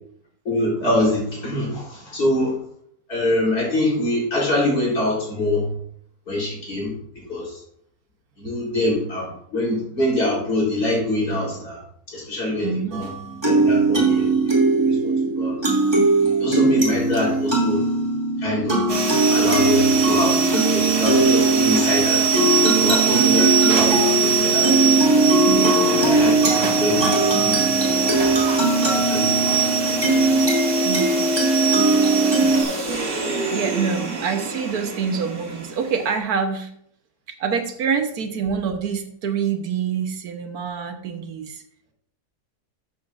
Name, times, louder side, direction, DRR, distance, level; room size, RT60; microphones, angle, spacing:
voice 1, 0.5-2.5 3.1-5.7 6.3-6.9 7.3-7.5 8.4-11.8 12.1-13.1 13.4-15.1 15.4-15.6 16.4-17.8 18.4-18.9 19.3-22.2 22.8-24.7 25.9-27.6 28.0-28.4 28.8-29.4, left 1 dB, 75° left, -4 dB, 4.2 m, -24 dB
voice 2, 12.6-13.0 16.6-16.9 25.4-25.9 30.8-31.3 32.4-32.8 33.5-36.7 37.4-41.6, right 6 dB, 75° right, 7 dB, 1.4 m, -26 dB
sound 1, 12.9-32.6, right 2 dB, 15° right, 2.5 m, -20 dB
sound 2, 18.9-36.2, right 5 dB, 40° right, 1.2 m, -23 dB
12.5 x 7.2 x 2.5 m, 0.68 s
omnidirectional pair, 1.7 m